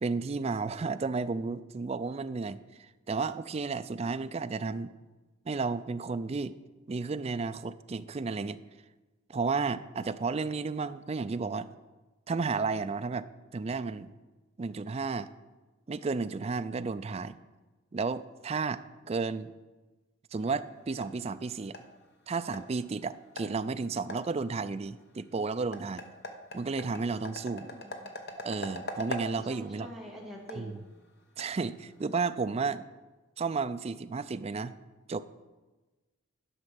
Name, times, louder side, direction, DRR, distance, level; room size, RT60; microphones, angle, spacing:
voice 1, 0.0-4.9 5.5-6.6 6.9-8.6 9.3-11.7 12.3-13.3 13.5-14.1 14.6-15.3 15.9-17.3 17.9-19.5 20.3-21.7 22.3-26.0 26.5-27.7 28.4-29.9 30.6-30.8 31.4-32.8 33.4-34.7 35.1-35.2, right 4 dB, 30° right, 12 dB, 0.3 m, -32 dB
sound 1, 20.3-32.2, left 1 dB, 50° left, 1.0 m, -45 dB
voice 2, 27.6-28.1 29.4-30.9, right 1 dB, ahead, -3 dB, 1.8 m, -46 dB
11.0 x 6.2 x 5.8 m, 1.2 s
head